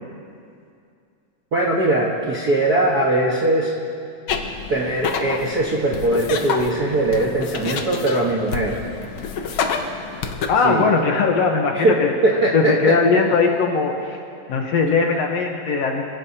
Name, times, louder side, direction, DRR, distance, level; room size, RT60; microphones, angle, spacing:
voice 1, 1.5-3.7 4.7-8.8 10.6-10.9 11.7-13.0 13.3-13.4 14.6-14.7, right 1 dB, 50° right, -4 dB, 1.2 m, -20 dB
sound 1, 4.3-10.5, left 5 dB, 85° left, 1.1 m, -28 dB
voice 2, 10.5-12.1 12.5-14.2 14.5-16.0, left 4 dB, 65° left, 1 dB, 1.9 m, -19 dB
25.0 x 17.0 x 2.8 m, 2.4 s
omnidirectional pair, 3.7 m